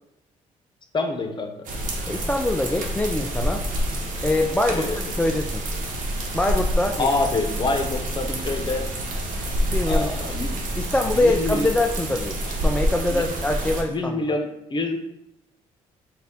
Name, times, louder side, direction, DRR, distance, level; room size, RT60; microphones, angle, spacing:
voice 1, 0.9-1.5 4.8-5.0 7.0-8.9 9.9-10.5 11.1-11.7 13.1-13.2 13.9-15.0, left 2 dB, 30° left, 4 dB, 0.8 m, -26 dB
sound 1, 1.6-13.8, equal, 65° right, 1.0 m, -27 dB
voice 2, 2.1-3.7 4.2-5.7 6.3-7.1 9.7-10.3 10.8-14.4, left 2 dB, 10° left, 3 dB, 0.3 m, -24 dB
4.1 x 2.4 x 3.8 m, 0.83 s
supercardioid pair, 60°, 15 cm